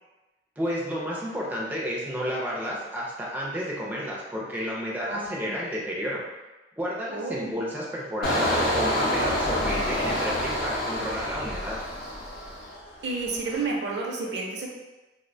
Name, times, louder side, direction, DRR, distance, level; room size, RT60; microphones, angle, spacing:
voice 1, 0.6-6.2 6.8-11.8, equal, 10° right, -5 dB, 0.4 m, -31 dB
voice 2, 5.0-5.5 7.1-7.6 13.0-14.7, right 3 dB, 70° right, -1 dB, 0.5 m, -31 dB
Engine, 8.2-12.9 13.3-13.6, left 1 dB, 55° left, 0.6 m, -27 dB
2.3 x 2.1 x 2.6 m, 1.1 s
head